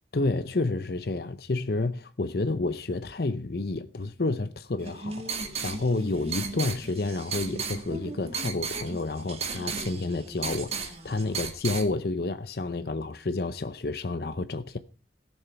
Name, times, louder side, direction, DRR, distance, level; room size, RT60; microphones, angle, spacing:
voice 1, 0.1-14.8, left 2 dB, 60° left, 0.7 m, -30 dB
sound 1, 4.8-11.9, right 5 dB, 35° right, 1.9 m, -35 dB
17.0 x 7.4 x 5.9 m
head